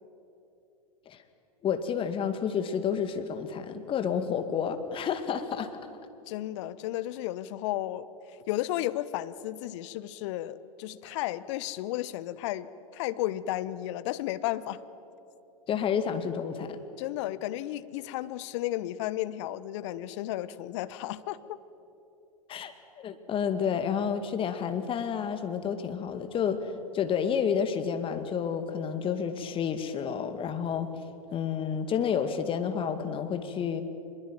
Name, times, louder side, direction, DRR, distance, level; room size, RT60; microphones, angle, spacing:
voice 1, 1.6-5.8 15.7-16.8 22.5-30.9 31.3-33.8, left 7 dB, 30° left, 9 dB, 2.1 m, -30 dB
voice 2, 6.3-8.1 8.5-14.8 17.0-21.4, left 14 dB, 50° left, 16 dB, 1.0 m, -33 dB
24.5 x 22.0 x 9.3 m, 2.9 s
figure-of-eight pair, 95°, 19 cm